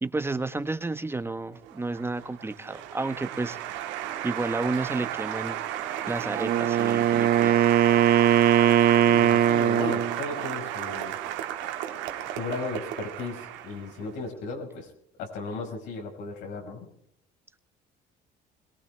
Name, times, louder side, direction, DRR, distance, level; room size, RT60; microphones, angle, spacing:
voice 1, 0.0-3.6 4.2-5.6 6.1-7.7, right 3 dB, 15° right, 11 dB, 1.1 m, -31 dB
Applause, 1.6-14.1, right 12 dB, 85° right, 1.9 m, -34 dB
Wind instrument woodwind instrument, 6.3-10.2, right 10 dB, 55° right, 0.9 m, -20 dB
voice 2, 9.0-11.2 12.3-14.9 15.2-16.9, left 3 dB, 85° left, 1 dB, 5.1 m, -35 dB
22.0 x 18.5 x 3.4 m, 0.69 s
cardioid pair, 110°, 19 cm